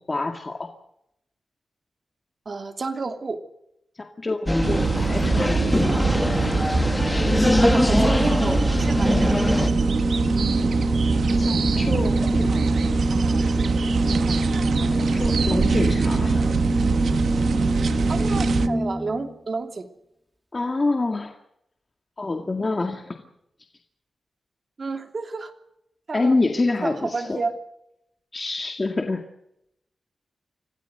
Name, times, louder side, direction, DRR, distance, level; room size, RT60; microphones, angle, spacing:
voice 1, 0.1-0.7 4.0-5.7 11.4-12.6 14.9-16.6 20.5-21.3 22.2-23.2 26.1-27.4 28.3-29.2, left 3 dB, 30° left, 4 dB, 2.0 m, -27 dB
voice 2, 2.4-3.4 7.2-9.4 18.1-19.9 24.8-25.5 26.1-26.3 26.8-27.5, right 3 dB, 45° right, 6 dB, 3.0 m, -30 dB
sound 1, 4.5-9.7, left 1 dB, 10° left, 1.8 m, -21 dB
sound 2, 4.6-18.7, right 5 dB, 70° right, 1.2 m, -24 dB
Organ, 8.6-19.3, equal, 10° right, 2.7 m, -25 dB
26.0 x 17.0 x 8.0 m, 0.81 s
wide cardioid pair, 110°, 0 cm